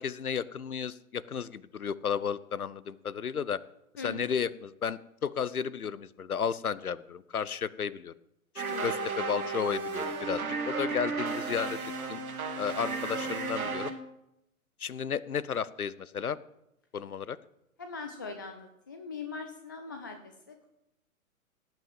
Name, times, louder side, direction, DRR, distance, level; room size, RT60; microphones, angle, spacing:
voice 1, 0.0-3.6 4.0-8.1 8.5-11.8 12.1-12.2 12.6-13.9 14.8-16.4 16.9-17.4, left 7 dB, 80° left, 20 dB, 0.8 m, -33 dB
voice 2, 4.0-4.4 8.7-8.9 17.8-20.7, left 4 dB, 15° left, 6 dB, 0.4 m, -41 dB
sound 1, 8.6-13.9, right 4 dB, 75° right, 2.2 m, -34 dB
17.5 x 5.9 x 7.4 m, 0.83 s
figure-of-eight pair, 125°, 43 cm